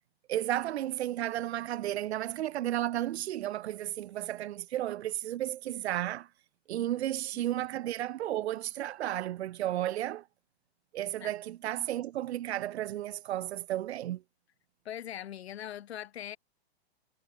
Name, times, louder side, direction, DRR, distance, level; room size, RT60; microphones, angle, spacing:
voice 1, 0.3-6.3 6.7-10.2 10.9-14.2, right 13 dB, 90° right, 0.5 m, -33 dB
voice 2, 14.9-16.4, left 11 dB, 75° left, 1.8 m, -41 dB
hypercardioid pair, 140°, 32 cm